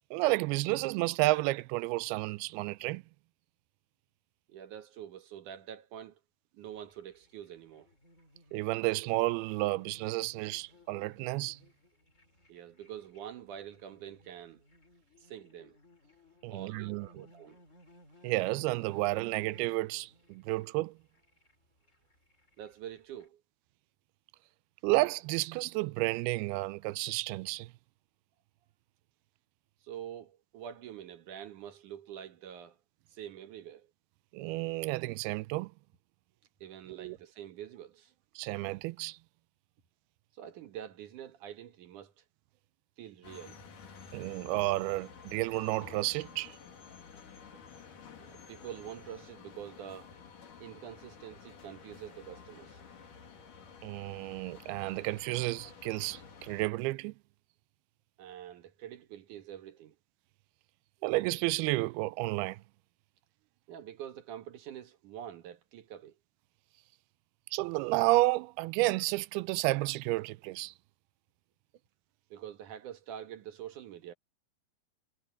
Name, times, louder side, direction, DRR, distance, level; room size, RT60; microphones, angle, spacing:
voice 1, 0.1-3.0 8.5-11.6 16.4-17.1 18.2-20.9 24.8-27.7 34.3-35.7 36.9-37.2 38.4-39.2 44.1-46.6 53.8-57.1 61.0-62.6 67.5-70.7, right 20 dB, 85° right, 2.5 m, -31 dB
voice 2, 4.5-6.2 6.5-7.9 12.5-14.7 15.2-15.8 16.5-17.6 22.6-23.4 29.8-32.8 33.1-33.9 36.6-38.1 40.4-42.2 43.0-43.6 48.2-50.1 50.6-52.8 58.2-60.0 63.7-66.2 72.3-74.1, right 10 dB, 60° right, 2.6 m, -46 dB
sound 1, 6.6-23.3, left 1 dB, 20° left, 4.3 m, -61 dB
sound 2, 43.2-56.7, left 6 dB, 55° left, 4.5 m, -52 dB
omnidirectional pair, 4.4 m